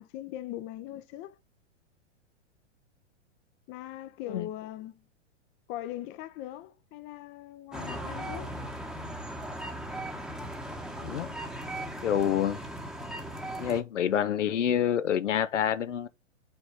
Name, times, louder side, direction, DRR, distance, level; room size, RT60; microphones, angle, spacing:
voice 1, 0.0-1.4 3.7-5.0 5.7-8.6, left 13 dB, 30° left, 0.6 m, -40 dB
sound 1, 7.7-13.8, right 1 dB, ahead, 1.0 m, -38 dB
voice 2, 12.0-12.6 13.6-16.1, left 9 dB, 75° left, 0.8 m, -27 dB
5.8 x 3.9 x 4.7 m
hypercardioid pair, 110°, 36 cm